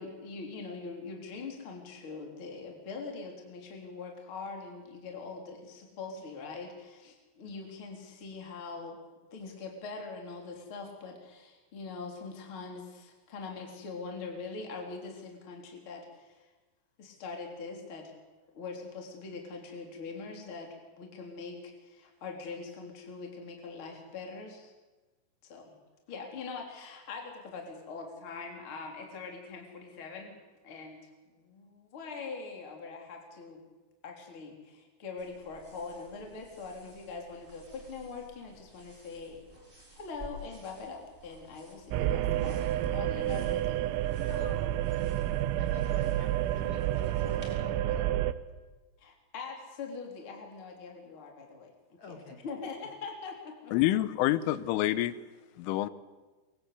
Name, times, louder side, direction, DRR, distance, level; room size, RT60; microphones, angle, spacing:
voice 1, 0.0-9.0 9.3-16.5 17.0-18.2 18.5-24.7 25.4-25.8 26.1-30.4 30.6-33.7 34.0-39.4 39.9-43.8 49.0-53.7, left 4 dB, 30° left, 1 dB, 3.9 m, -43 dB
sound 1, 35.2-47.5, equal, 10° right, 4.8 m, -53 dB
sound 2, 41.9-48.3, right 13 dB, 85° right, 3.7 m, -29 dB
voice 2, 44.2-44.7 45.6-48.1 52.0-52.4, left 4 dB, 45° left, 3 dB, 3.1 m, -48 dB
voice 3, 53.7-55.2 55.6-55.9, left 14 dB, 80° left, 15 dB, 3.4 m, -27 dB
25.0 x 22.5 x 8.3 m, 1.3 s
omnidirectional pair, 5.8 m